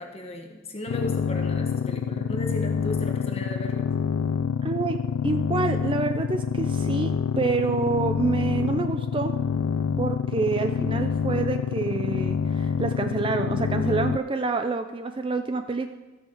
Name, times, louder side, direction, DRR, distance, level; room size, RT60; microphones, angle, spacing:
voice 1, 0.0-3.9, left 1 dB, 30° left, 2 dB, 1.3 m, -36 dB
sound 1, 0.9-14.2, left 6 dB, 85° left, 0.3 m, -27 dB
voice 2, 4.6-5.0 5.2-9.3 10.0-15.9, right 3 dB, 25° right, 8 dB, 0.4 m, -27 dB
14.5 x 6.4 x 4.9 m, 1.2 s
head